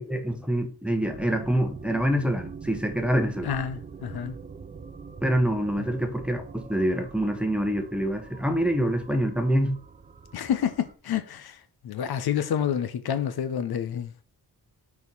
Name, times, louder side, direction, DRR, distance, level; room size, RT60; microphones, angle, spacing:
voice 1, 0.0-3.5 5.2-9.8, equal, 5° right, 0.8 m, -26 dB
sound 1, 1.0-10.9, right 5 dB, 20° right, 0.4 m, -43 dB
voice 2, 3.4-4.4 10.3-14.1, left 9 dB, 70° left, 0.8 m, -29 dB
4.7 x 4.3 x 5.3 m
wide cardioid pair, 145°, 39 cm